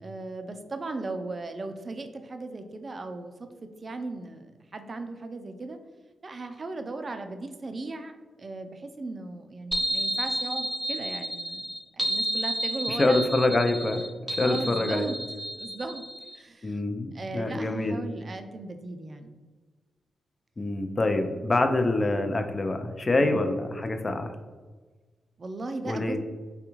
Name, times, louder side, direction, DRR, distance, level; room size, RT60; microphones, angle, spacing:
voice 1, 0.0-3.3 3.6-5.8 6.2-13.2 14.4-15.2 15.5-16.0 16.3-16.8 17.1-19.3 23.2-23.5 25.4-26.2, right 2 dB, 45° right, 7 dB, 0.3 m, -37 dB
sound 1, 9.7-16.4, right 1 dB, 10° right, 0.6 m, -31 dB
voice 2, 12.9-14.1 14.4-15.1 16.6-18.0 20.6-24.3 25.9-26.2, left 2 dB, 35° left, 6 dB, 0.4 m, -26 dB
3.4 x 2.3 x 3.0 m, 1.4 s
supercardioid pair, 40°, 0 cm